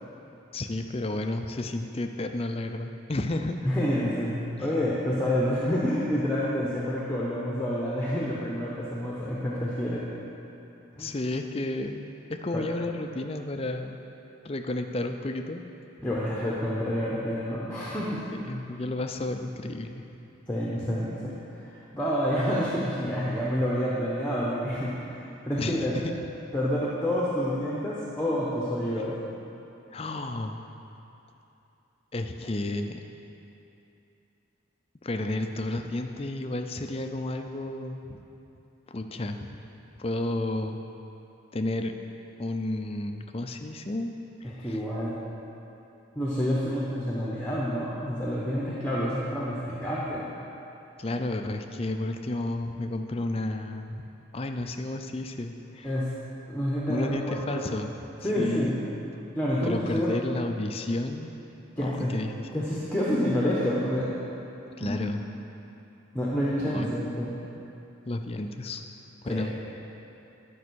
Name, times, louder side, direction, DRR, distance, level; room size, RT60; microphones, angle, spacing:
voice 1, 0.5-3.7 11.0-14.0 14.4-15.6 18.3-20.0 25.6-26.2 29.9-30.6 32.1-33.0 35.0-38.2 38.9-39.5 40.0-40.8 41.5-42.0 42.4-44.1 44.4-44.8 51.0-54.0 54.3-55.9 56.9-57.9 58.2-59.0 59.6-61.3 61.8-62.5 64.8-65.2 66.7-66.9 68.0-68.8 69.2-69.5, left 2 dB, 30° left, 5 dB, 0.4 m, -32 dB
voice 2, 3.6-4.3 4.6-10.1 10.9-11.1 12.5-12.6 16.0-18.2 20.5-25.1 25.5-25.9 26.5-29.1 44.4-45.1 46.2-50.3 55.8-56.1 56.5-57.6 58.2-58.7 59.3-60.1 61.8-62.1 62.5-64.1 64.8-65.0 66.1-67.3 69.2-69.5, equal, 10° left, -7 dB, 0.9 m, -28 dB
11.0 x 5.4 x 6.3 m, 2.9 s
head